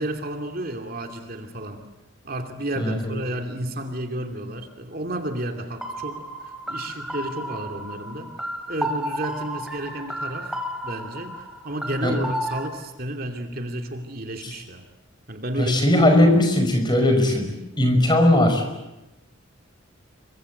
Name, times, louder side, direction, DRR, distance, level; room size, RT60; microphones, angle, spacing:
voice 1, 0.0-1.8 2.2-6.3 6.7-8.3 8.7-10.6 10.8-14.9 15.3-16.3, right 1 dB, 45° right, 4 dB, 2.7 m, -32 dB
voice 2, 2.8-3.2 12.0-12.2 14.4-14.5 15.6-18.6, left 1 dB, 20° left, 5 dB, 5.4 m, -19 dB
sound 1, 5.8-12.7, equal, 5° right, 2.7 m, -32 dB
28.0 x 24.0 x 8.4 m, 0.99 s
head